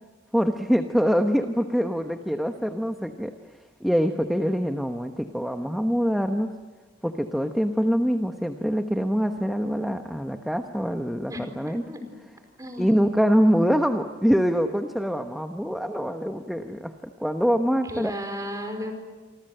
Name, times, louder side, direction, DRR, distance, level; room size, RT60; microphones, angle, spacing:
voice 1, 0.3-6.5 7.0-11.8 12.8-18.1, equal, ahead, 5 dB, 1.0 m, -24 dB
voice 2, 11.3-12.0 12.6-13.0 17.9-18.9, left 1 dB, 20° right, 5 dB, 4.6 m, -34 dB
28.5 x 25.0 x 7.8 m, 1.4 s
head